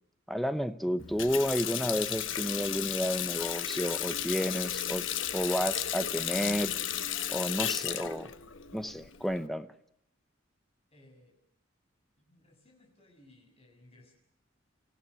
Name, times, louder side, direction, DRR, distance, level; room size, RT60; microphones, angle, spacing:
voice 1, 0.3-5.0 5.3-6.7 7.3-8.3 8.7-9.7, equal, ahead, 11 dB, 0.9 m, -31 dB
Water tap faucet, 1.0-9.4, left 10 dB, 65° left, 1.1 m, -34 dB
voice 2, 10.9-11.4 12.2-14.1, left 1 dB, 30° left, 2 dB, 6.8 m, -60 dB
26.5 x 15.0 x 9.6 m, 0.78 s
head